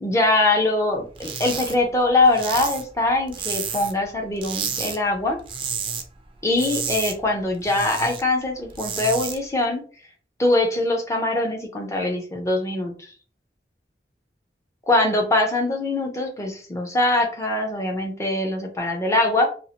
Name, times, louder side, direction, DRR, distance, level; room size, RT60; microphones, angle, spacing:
voice 1, 0.0-5.4 6.4-9.8 10.4-13.1 14.9-19.5, left 2 dB, 15° left, 1 dB, 0.6 m, -22 dB
sound 1, 1.1-1.7 2.0-4.0 4.4-5.0 5.3-6.0 6.4-8.2 8.6-9.4, right 6 dB, 30° right, 0.3 m, -30 dB
2.7 x 2.4 x 2.8 m, 0.41 s
head